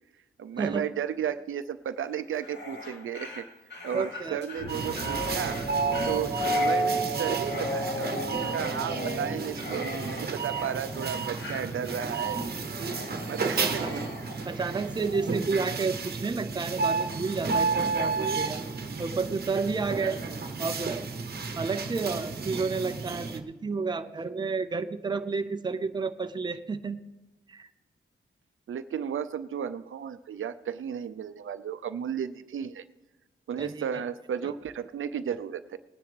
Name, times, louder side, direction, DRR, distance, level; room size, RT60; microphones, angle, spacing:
voice 1, 0.4-3.4 3.8-5.6 6.0-12.4 13.3-14.1 28.7-32.8 33.5-35.8, right 8 dB, 75° right, 13 dB, 0.6 m, -34 dB
Dog, 2.3-15.3, left 1 dB, 60° left, 2.4 m, -41 dB
voice 2, 3.9-4.4 13.6-14.0 14.4-18.6 19.0-20.2 20.6-21.0 21.6-27.0 27.5-27.7 33.6-34.0 34.4-34.5, right 4 dB, 20° right, 9 dB, 0.5 m, -31 dB
sound 1, 4.5-10.1, right 1 dB, 75° left, 4.1 m, -32 dB
sound 2, 4.7-23.4, right 4 dB, 50° right, 1.0 m, -32 dB
19.5 x 10.5 x 3.4 m, 1.1 s
wide cardioid pair, 125°, 21 cm